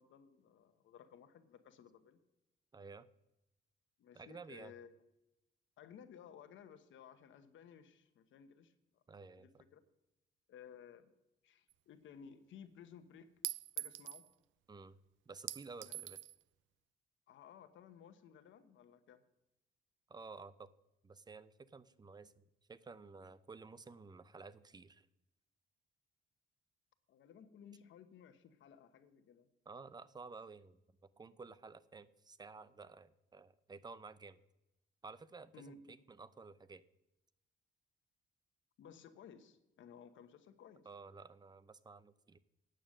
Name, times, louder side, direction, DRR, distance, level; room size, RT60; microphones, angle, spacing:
voice 1, 0.0-2.2 4.0-4.9 5.8-9.0 9.4-9.8 10.5-11.1 11.4-13.3 13.8-14.3 15.7-16.0 17.3-19.2 27.1-29.5 35.5-36.0 38.8-40.9, left 7 dB, 75° left, 10 dB, 1.1 m, -57 dB
voice 2, 2.7-3.1 4.1-4.7 9.1-9.6 14.7-15.0 15.3-16.2 20.1-20.7 21.0-25.1 29.7-30.8 31.2-34.4 35.0-36.8 40.9-42.4, right 4 dB, 20° right, 15 dB, 0.6 m, -53 dB
Chink clink, 11.7-11.8 13.4-14.3 15.5-16.4, right 15 dB, 75° right, 0.4 m, -43 dB
9.0 x 8.8 x 6.4 m, 0.92 s
cardioid pair, 90°, 20 cm